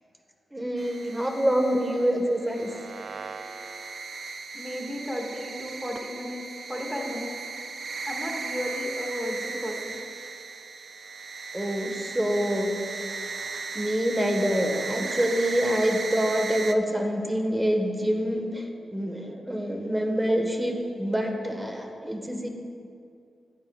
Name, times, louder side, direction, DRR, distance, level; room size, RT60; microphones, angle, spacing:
voice 1, 0.5-2.7 11.5-12.7 13.7-22.5, equal, 15° right, 3 dB, 1.4 m, -26 dB
sound 1, 0.8-16.7, right 4 dB, 60° right, 0.4 m, -36 dB
voice 2, 4.5-7.4 8.1-10.0, equal, ahead, 0 dB, 1.9 m, -34 dB
14.5 x 9.1 x 2.4 m, 2.5 s
cardioid pair, 55°, 0 cm